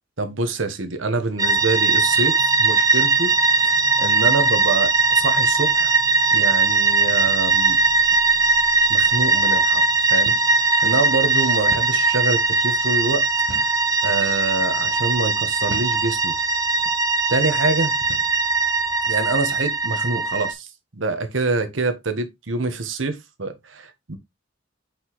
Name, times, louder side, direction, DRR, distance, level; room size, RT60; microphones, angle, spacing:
voice 1, 0.2-3.7 4.0-5.9 6.3-7.8 8.9-9.8 10.1-10.3 10.6-13.2 13.6-13.7 14.0-16.4 17.3-18.0 19.0-20.7 20.9-24.2, right 3 dB, 90° right, 1.2 m, -26 dB
sound 1, 1.4-20.5, right 4 dB, 20° right, 0.8 m, -19 dB
sound 2, 10.3-10.6 10.9-11.0 11.7-12.0 13.5-13.8 14.5-14.7 15.7-16.0 16.8-17.0 18.0-18.4, right 2 dB, 60° right, 1.0 m, -37 dB
5.9 x 5.3 x 3.0 m
head